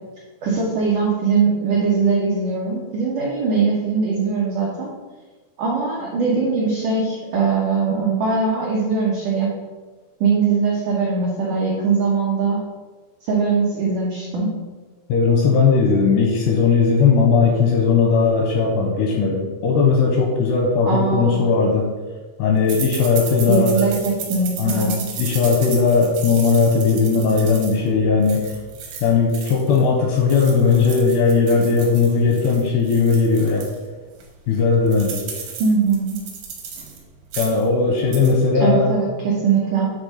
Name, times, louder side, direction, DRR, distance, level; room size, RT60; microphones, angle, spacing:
voice 1, 0.4-4.9 5.6-9.5 10.2-12.6 13.2-14.5 20.8-21.5 23.5-25.0 35.6-36.2 38.6-39.9, right 5 dB, 90° right, -4 dB, 1.7 m, -21 dB
voice 2, 15.1-21.9 22.4-23.9 24.6-24.9 25.2-28.6 29.0-33.7 34.5-35.2 37.4-38.9, left 5 dB, 85° left, 0 dB, 2.4 m, -18 dB
sound 1, 22.7-29.8 30.2-33.8 34.2-34.3 34.5-37.0 37.2-37.7 38.0-38.3, right 6 dB, 70° right, 1.9 m, -34 dB
9.6 x 3.6 x 5.5 m, 1.3 s
omnidirectional pair, 5.6 m